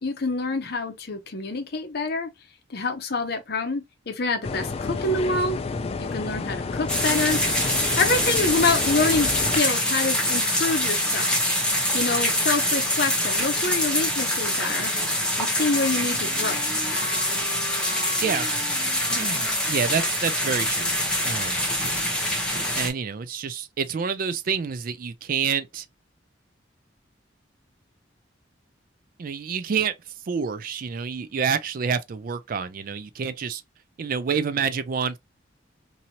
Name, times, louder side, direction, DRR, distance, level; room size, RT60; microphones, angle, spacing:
voice 1, 0.0-2.3 2.7-5.6 6.0-7.4 7.7-11.4 11.9-14.9 15.4-16.6, left 3 dB, 55° left, 0.7 m, -26 dB
sound 1, 4.4-9.6, left 4 dB, 30° left, 0.3 m, -30 dB
sound 2, 6.9-22.9, left 1 dB, 5° left, 0.8 m, -25 dB
Wind instrument woodwind instrument, 14.9-20.2, left 3 dB, 15° right, 1.4 m, -41 dB
voice 2, 19.1-20.9 21.2-21.6 22.8-25.8 29.2-29.9 30.3-33.6 34.0-35.2, right 6 dB, 45° right, 0.3 m, -28 dB
2.8 x 2.7 x 2.8 m
head